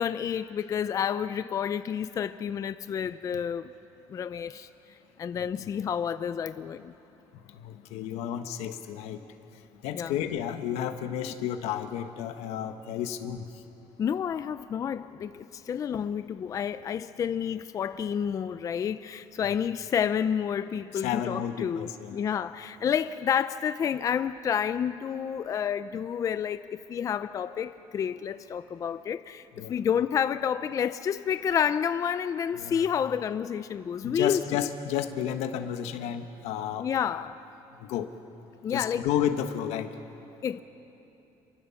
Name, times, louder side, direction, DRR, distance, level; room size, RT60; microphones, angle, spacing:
voice 1, 0.0-3.7 4.1-4.7 5.2-6.9 9.9-10.2 14.0-34.4 36.8-37.4 38.6-39.1 40.4-40.6, left 8 dB, 30° left, 0.5 m, -29 dB
voice 2, 5.4-5.7 7.5-9.2 9.8-13.5 20.9-22.2 29.6-29.7 32.6-32.9 34.0-36.9 37.9-38.1 38.7-39.9, left 9 dB, 90° left, 1.3 m, -32 dB
28.5 x 24.0 x 7.1 m
cardioid pair, 155°, 11 cm